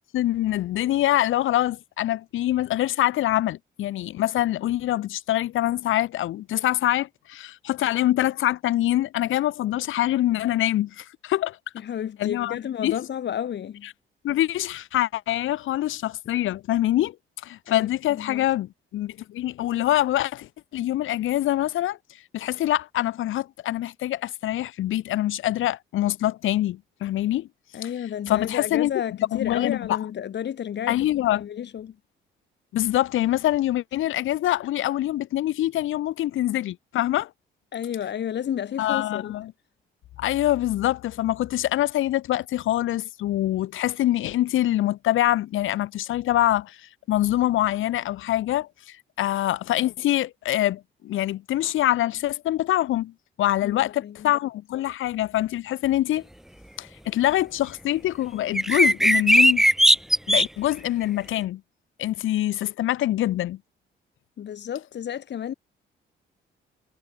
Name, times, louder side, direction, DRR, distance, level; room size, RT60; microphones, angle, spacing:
voice 1, 0.1-11.6 12.2-13.0 14.2-17.1 17.4-22.0 22.3-27.5 28.3-28.9 29.3-30.0 30.9-31.4 32.7-37.3 38.8-39.5 40.2-53.1 53.4-56.2 56.8-59.6 60.3-61.6 62.0-63.6, left 14 dB, 85° left, 4.6 m, -25 dB
voice 2, 11.7-13.9 17.7-18.5 27.7-32.0 37.7-39.3 53.6-54.3 64.4-65.5, left 9 dB, 60° left, 4.2 m, -32 dB
sound 1, 58.6-60.5, equal, ahead, 1.2 m, -17 dB
cardioid pair, 90°, 20 cm